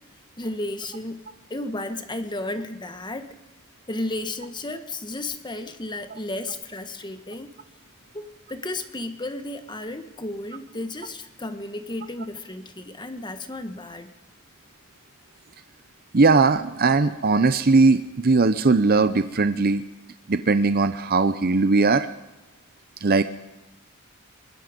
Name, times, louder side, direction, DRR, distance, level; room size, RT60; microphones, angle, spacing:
voice 1, 0.4-3.4 3.9-7.5 8.1-14.1, left 2 dB, 20° left, 9 dB, 1.5 m, -33 dB
voice 2, 16.1-19.8 20.3-22.1 23.0-23.2, right 3 dB, 45° right, 11 dB, 0.7 m, -19 dB
23.5 x 21.5 x 5.2 m, 1.0 s
head